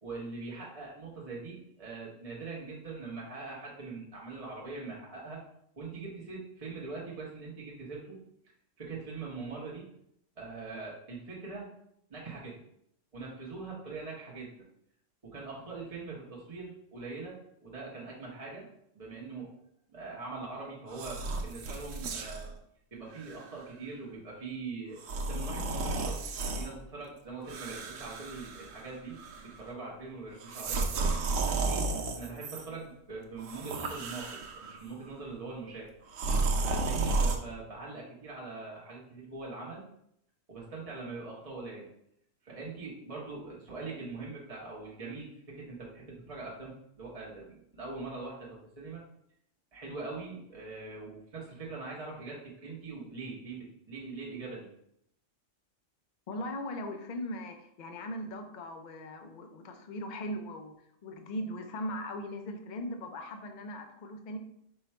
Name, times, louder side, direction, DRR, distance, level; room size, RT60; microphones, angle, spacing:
voice 1, 0.0-5.4 5.8-8.2 8.8-9.8 10.4-11.7 12.1-12.6 13.1-14.5 15.2-18.6 18.9-19.5 19.9-22.5 22.9-29.2 29.4-31.1 31.5-35.9 36.6-39.9 40.5-41.9 42.4-49.0 49.7-54.7, right 3 dB, 30° right, -5 dB, 0.9 m, -42 dB
sound 1, 20.9-22.5 23.2-23.4 25.0-26.7 27.5-28.9 29.2-29.6 30.4-32.6 33.4-34.8 36.1-37.4, right 3 dB, 80° right, 1.0 m, -32 dB
voice 2, 56.3-60.7 61.0-64.4, left 1 dB, 50° left, 5 dB, 0.5 m, -39 dB
5.5 x 2.3 x 4.2 m, 0.74 s
omnidirectional pair, 1.3 m